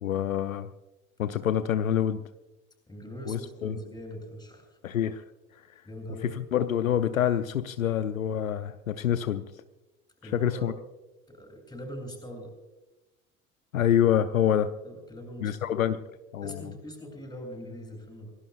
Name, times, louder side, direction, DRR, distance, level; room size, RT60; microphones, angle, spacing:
voice 1, 0.0-0.7 1.2-2.2 3.3-3.8 4.8-5.2 6.2-9.5 10.2-10.7 13.7-14.7 15.4-16.0 16.3-16.6, left 10 dB, 75° left, 12 dB, 0.8 m, -26 dB
voice 2, 2.9-4.8 5.8-6.3 10.2-10.8 11.3-12.5 14.8-15.8 16.4-18.4, equal, 10° left, 2 dB, 7.4 m, -42 dB
27.5 x 18.5 x 2.4 m, 1.0 s
figure-of-eight pair, 75°, 41 cm